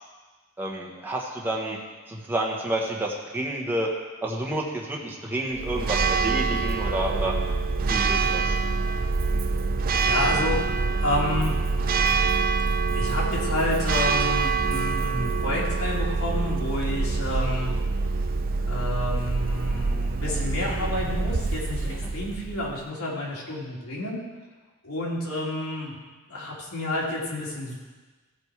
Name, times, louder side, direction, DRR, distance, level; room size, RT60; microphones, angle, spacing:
voice 1, 0.6-1.8 2.1-3.9 4.2-7.3 7.9-8.5 22.0-22.1, right 1 dB, 10° right, -3 dB, 1.3 m, -29 dB
Church bell, 5.5-22.8, right 4 dB, 40° right, 0.5 m, -25 dB
voice 2, 10.0-10.6 11.0-11.5 12.9-17.7 18.7-24.2 24.8-25.9 26.3-27.7, left 1 dB, 80° left, -4 dB, 2.7 m, -29 dB
15.5 x 5.3 x 4.7 m, 1.3 s
head